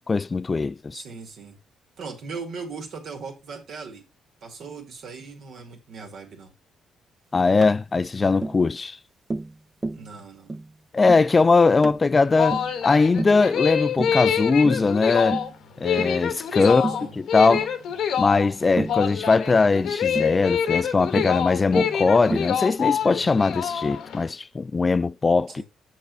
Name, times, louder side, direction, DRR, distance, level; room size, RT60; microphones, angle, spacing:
voice 1, 0.0-1.0 7.3-9.0 10.9-15.4 15.8-16.9 17.2-17.7 18.2-25.6, left 4 dB, 30° left, 0.3 m, -20 dB
voice 2, 0.9-1.6 2.0-4.0 4.4-6.5 9.9-10.5 16.7-17.1 25.5-25.6, right 4 dB, 65° right, 2.2 m, -38 dB
Tap, 7.6-7.8 8.4-8.6 9.3-9.5 9.8-10.1 10.5-10.7 11.1-11.3 11.8-12.0 12.5-12.8 13.2-13.4 14.0-14.2 14.6-14.9 15.3-15.5 16.0-16.2 16.8-17.1 17.5-17.7 18.8-19.0 20.1-20.4 21.2-21.4 21.8-22.0 22.3-22.6, right 2 dB, 20° right, 0.5 m, -30 dB
sound 1, 12.1-24.2, left 8 dB, 75° left, 1.1 m, -26 dB
6.6 x 6.1 x 3.9 m
cardioid pair, 90°, 0 cm